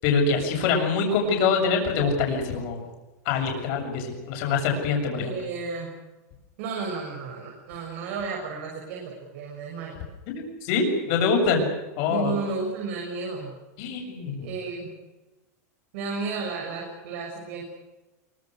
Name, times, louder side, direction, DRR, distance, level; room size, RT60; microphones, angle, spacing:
voice 1, 0.0-2.8 3.3-5.4 10.3-11.7 12.0-12.3 13.8-14.5, left 5 dB, 40° left, 2 dB, 7.2 m, -24 dB
voice 2, 5.2-5.9 6.6-9.9 12.1-13.6 14.4-14.9 15.9-17.6, right 4 dB, 50° right, -1 dB, 6.6 m, -33 dB
25.0 x 24.5 x 6.6 m, 1.1 s
supercardioid pair, 175°, 9 cm